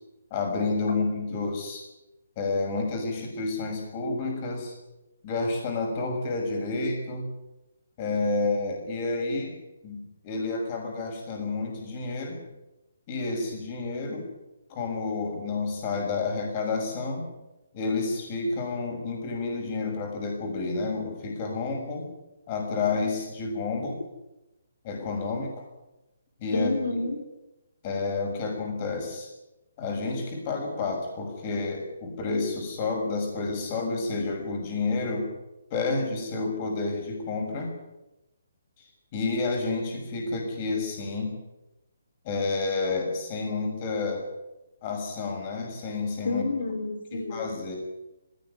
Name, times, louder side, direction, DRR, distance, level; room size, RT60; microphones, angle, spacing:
voice 1, 0.3-1.8 2.4-4.7 5.2-7.3 8.0-9.6 9.8-12.4 13.1-14.3 14.7-17.3 17.7-22.1 22.5-24.0 24.8-25.6 26.4-26.7 27.8-29.3 29.8-35.3 35.7-37.7 38.8-38.9 39.1-41.4 42.2-44.2 44.8-46.4 47.1-47.7, left 3 dB, 25° left, 1 dB, 6.5 m, -30 dB
voice 2, 26.5-27.2 46.2-47.6, left 2 dB, 85° left, 4 dB, 4.8 m, -29 dB
19.0 x 17.5 x 9.6 m, 0.98 s
hypercardioid pair, 165°, 0 cm